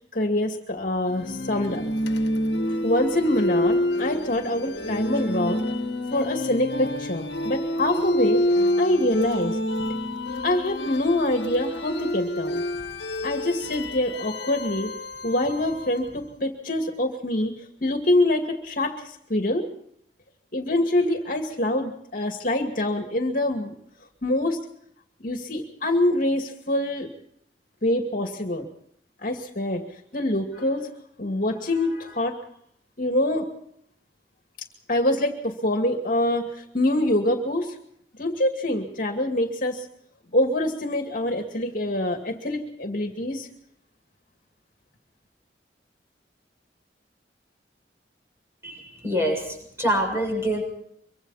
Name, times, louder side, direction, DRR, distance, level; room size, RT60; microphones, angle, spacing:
voice 1, 0.1-1.8 2.7-5.6 6.1-9.6 10.4-12.6 13.2-14.9 15.2-19.6 20.5-23.8 24.2-24.6 25.2-27.1 27.8-28.7 29.2-30.9 31.2-32.4 33.0-33.5 34.9-37.8 38.2-39.9 40.3-43.5, left 1 dB, 50° left, 4 dB, 2.4 m, -25 dB
sound 1, 1.1-16.2, left 1 dB, 70° left, 1.8 m, -28 dB
voice 2, 48.6-50.6, equal, 15° right, 2 dB, 6.8 m, -26 dB
24.5 x 24.5 x 4.3 m, 0.71 s
head